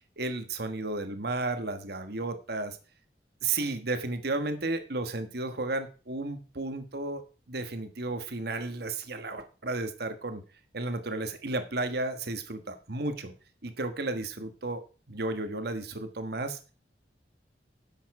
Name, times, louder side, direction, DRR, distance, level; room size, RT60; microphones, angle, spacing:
voice 1, 0.2-2.8 3.4-7.2 7.5-10.4 10.7-13.3 13.6-14.8 15.1-16.6, right 2 dB, 60° right, 8 dB, 1.4 m, -33 dB
11.0 x 7.3 x 4.8 m, 0.35 s
head